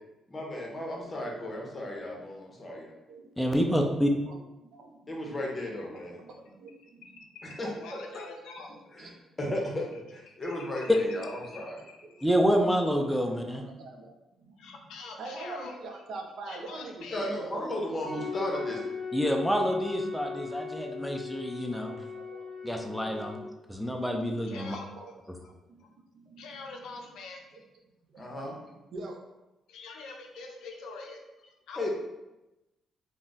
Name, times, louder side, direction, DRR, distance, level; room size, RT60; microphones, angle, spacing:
voice 1, 0.3-3.0 5.1-6.2 7.4-7.7 9.0-9.8 10.1-11.8 17.1-18.8 28.2-28.6 31.8-31.9, left 1 dB, 25° left, -1 dB, 0.8 m, -35 dB
voice 2, 3.4-4.1 12.2-13.6 19.1-21.9 22.6-23.4 23.7-24.8, equal, ahead, 2 dB, 0.4 m, -27 dB
voice 3, 4.7-7.1 8.7-9.1 9.5-9.9 11.5-11.6 12.0-12.3 13.0-14.8 15.2-17.9 18.1-18.2 21.7-23.4 25.0-25.1 25.7-25.9 26.1-26.6 27.5-27.6 28.1-29.2, right 2 dB, 65° right, 2 dB, 0.5 m, -45 dB
voice 4, 7.0-8.8 10.3-12.3 14.6-15.7 16.5-17.3 18.4-18.6 24.4-24.9 25.4-25.5 25.8-25.9 26.4-27.4 29.7-31.9, left 4 dB, 85° left, 2 dB, 0.4 m, -45 dB
sound 1, 18.0-23.4, left 5 dB, 30° right, 1.1 m, -38 dB
2.4 x 2.1 x 3.9 m, 0.98 s
cardioid pair, 90°, 0 cm